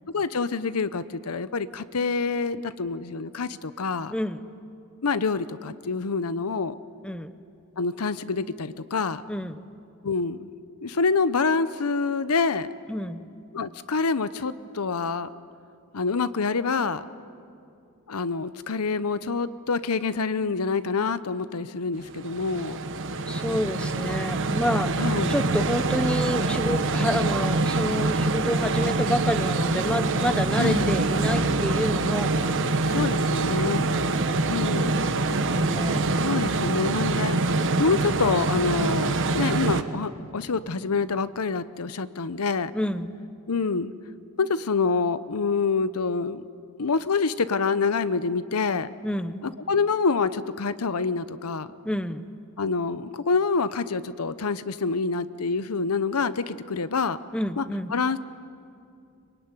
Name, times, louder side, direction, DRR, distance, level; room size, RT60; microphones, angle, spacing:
voice 1, 0.1-4.1 5.0-6.8 7.8-9.2 10.0-10.5 10.8-12.7 13.5-15.3 15.9-17.0 18.1-22.8 25.0-25.4 30.6-30.9 32.4-32.5 32.9-33.9 34.5-35.0 36.2-42.7 43.5-43.9 44.4-46.5 46.8-48.9 49.4-51.7 52.6-57.2 57.6-57.7 57.9-58.2, left 4 dB, 75° left, 14 dB, 0.8 m, -26 dB
voice 2, 4.1-4.4 7.0-7.3 9.3-9.6 12.9-13.3 23.3-25.0 25.3-32.3 33.9-36.0 42.7-43.1 49.0-49.4 51.8-52.3 57.3-57.9, left 1 dB, 5° left, 12 dB, 0.7 m, -29 dB
sound 1, 22.0-39.8, right 3 dB, 60° right, 1.2 m, -25 dB
24.0 x 23.0 x 9.7 m, 2.5 s
head